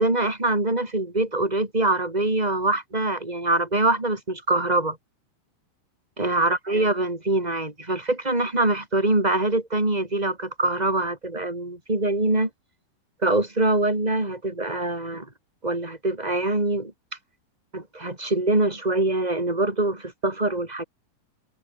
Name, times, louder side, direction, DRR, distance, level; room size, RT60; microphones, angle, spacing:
voice 1, 0.0-5.0 6.2-12.5 13.2-15.3 15.6-16.9 17.7-20.8, right 2 dB, 10° right, 4.4 m, -24 dB
omnidirectional pair, 5.7 m